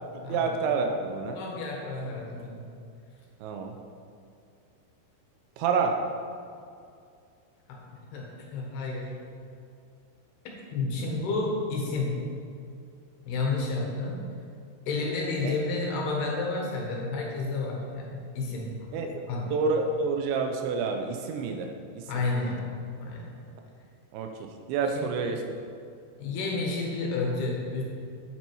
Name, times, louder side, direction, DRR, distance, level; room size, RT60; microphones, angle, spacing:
voice 1, 0.1-1.4 3.4-3.8 5.6-6.0 11.0-11.2 15.4-15.5 18.9-19.2 19.5-22.1 24.1-25.4, right 4 dB, 85° right, 4 dB, 3.0 m, -29 dB
voice 2, 1.4-2.6 7.7-9.2 10.7-12.3 13.3-14.2 14.9-18.9 19.3-19.5 22.1-22.7 23.0-23.3 24.9-25.1 26.2-27.8, left 3 dB, 70° left, -1 dB, 3.2 m, -31 dB
9.7 x 9.3 x 4.6 m, 2.4 s
omnidirectional pair, 5.2 m